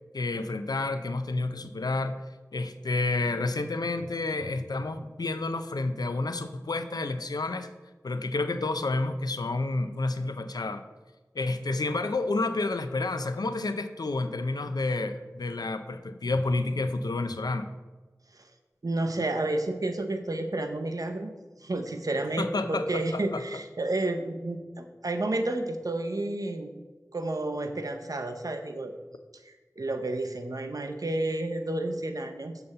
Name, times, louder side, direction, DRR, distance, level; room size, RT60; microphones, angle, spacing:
voice 1, 0.1-2.2 2.5-7.7 8.0-10.8 11.3-17.7 22.4-23.6, left 2 dB, 85° left, 9 dB, 0.5 m, -30 dB
voice 2, 18.8-21.3 21.6-26.7 27.1-28.9 29.5-32.6, right 2 dB, 65° right, 6 dB, 0.8 m, -31 dB
6.9 x 4.3 x 6.6 m, 1.2 s
wide cardioid pair, 40°, 7 cm